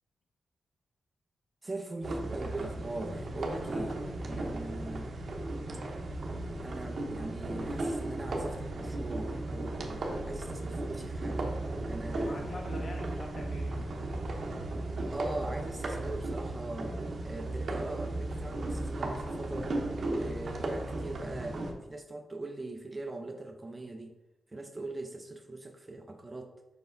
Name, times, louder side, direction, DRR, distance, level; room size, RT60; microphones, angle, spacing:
voice 1, 1.6-4.0 4.2-5.1 6.6-11.5 11.8-12.5 15.1-17.0 17.2-19.7 20.1-21.6 21.9-24.2 24.5-26.5, right 2 dB, 25° right, 4 dB, 0.7 m, -41 dB
sound 1, 2.0-21.7, right 2 dB, 55° right, 1.0 m, -35 dB
voice 2, 3.5-4.4 12.1-14.1 20.2-20.4, left 1 dB, 45° left, 2 dB, 1.3 m, -45 dB
5.4 x 4.6 x 3.9 m, 1.0 s
cardioid pair, 70°, 0 cm